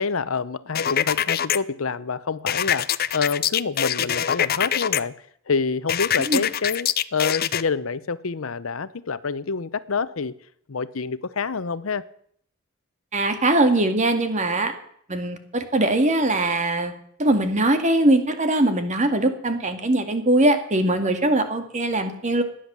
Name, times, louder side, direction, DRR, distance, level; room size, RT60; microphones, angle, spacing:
voice 1, 0.0-5.1 5.5-10.3 10.7-12.1, left 5 dB, 80° left, 0.8 m, -27 dB
sound 1, 0.7-1.6 2.5-5.0 5.9-7.6, left 10 dB, 50° left, 0.6 m, -24 dB
voice 2, 13.1-14.7 15.1-16.9 17.2-22.4, right 1 dB, 35° right, 2.0 m, -21 dB
16.0 x 10.0 x 7.4 m
head